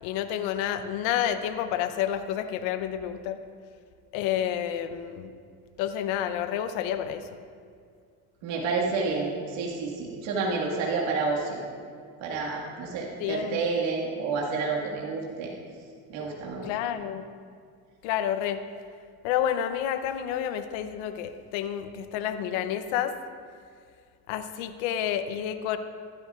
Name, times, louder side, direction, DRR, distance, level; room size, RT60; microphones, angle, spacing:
voice 1, 0.0-3.4 4.1-5.3 5.8-7.2 13.2-13.7 16.6-17.3 18.0-18.6 19.2-23.1 24.3-25.8, left 10 dB, 75° left, 10 dB, 0.8 m, -29 dB
voice 2, 8.4-11.6 12.2-15.5 16.1-16.7, right 4 dB, 70° right, -3 dB, 1.9 m, -29 dB
15.5 x 12.0 x 2.4 m, 2.1 s
supercardioid pair, 100°, 47 cm